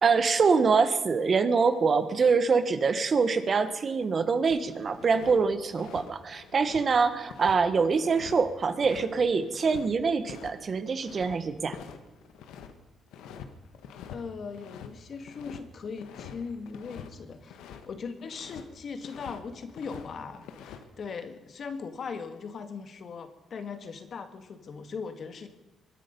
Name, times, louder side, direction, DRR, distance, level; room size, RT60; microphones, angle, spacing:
voice 1, 0.0-11.8, right 5 dB, 45° right, 11 dB, 1.3 m, -25 dB
sound 1, 4.5-5.4 5.7-9.9 10.3-10.5 10.8-12.7 13.1-13.5 13.7-14.2 14.5-17.9 18.2-18.7 19.0-20.1 20.3-20.8, left 8 dB, 90° left, 1.4 m, -46 dB
voice 2, 14.1-17.6 17.9-25.5, left 5 dB, 55° left, 9 dB, 1.7 m, -39 dB
23.5 x 10.0 x 5.4 m, 1.1 s
cardioid pair, 90°, 0 cm